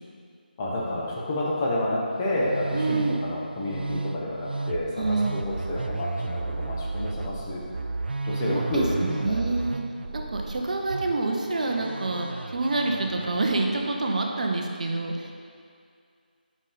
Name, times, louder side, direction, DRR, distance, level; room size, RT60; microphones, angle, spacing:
voice 1, 0.6-7.6 8.2-9.4, left 1 dB, 20° left, -5 dB, 0.9 m, -29 dB
Musical instrument, 2.1-13.9, right 3 dB, 80° right, 0.4 m, -33 dB
voice 2, 2.7-3.1 5.0-5.4 8.5-9.8 10.1-15.3, right 2 dB, 50° right, 2 dB, 0.7 m, -27 dB
5.3 x 5.3 x 5.0 m, 2.3 s
figure-of-eight pair, 165°, 5 cm